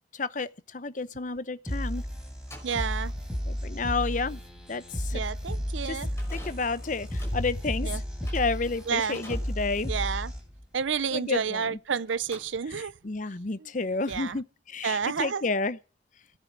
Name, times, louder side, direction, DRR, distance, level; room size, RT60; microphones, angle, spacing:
voice 1, 0.1-2.0 3.5-4.4 4.7-5.2 5.8-6.0 6.3-8.0 8.3-9.9 11.1-11.8 12.7-15.8, left 3 dB, 45° left, 0.7 m, -31 dB
sound 1, 1.7-10.7, equal, 5° right, 4.0 m, -33 dB
sound 2, 2.5-11.8 12.1-13.1, left 2 dB, 15° left, 5.7 m, -50 dB
voice 2, 2.6-3.1 5.1-6.1 7.8-8.0 8.9-9.2 9.9-10.3 10.7-12.9 14.1-14.4 14.8-15.5, right 6 dB, 85° right, 0.6 m, -30 dB
17.0 x 9.7 x 6.0 m
head